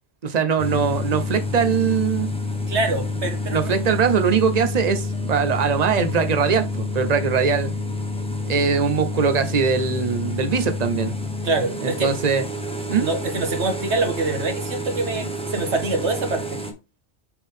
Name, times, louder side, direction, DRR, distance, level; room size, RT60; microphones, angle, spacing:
voice 1, 0.2-2.3 3.5-7.7 8.5-11.1 11.8-12.4 12.9-13.1, right 6 dB, 40° right, 0.9 m, -21 dB
sound 1, 0.6-16.7, left 2 dB, 5° left, 1.1 m, -28 dB
voice 2, 2.7-3.7 11.4-12.1 13.0-16.6, right 3 dB, 70° right, 1.7 m, -25 dB
7.1 x 3.8 x 3.6 m
omnidirectional pair, 1.2 m